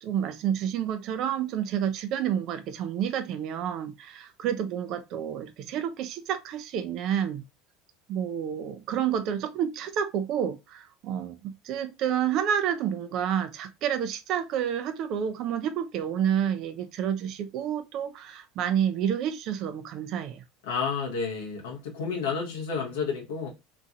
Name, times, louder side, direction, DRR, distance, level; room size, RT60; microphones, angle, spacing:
voice 1, 0.0-7.4 8.1-20.4, right 9 dB, 55° right, 0.4 m, -29 dB
voice 2, 20.7-23.5, left 5 dB, 90° left, 1.0 m, -30 dB
3.0 x 2.6 x 2.5 m
supercardioid pair, 105°, 0 cm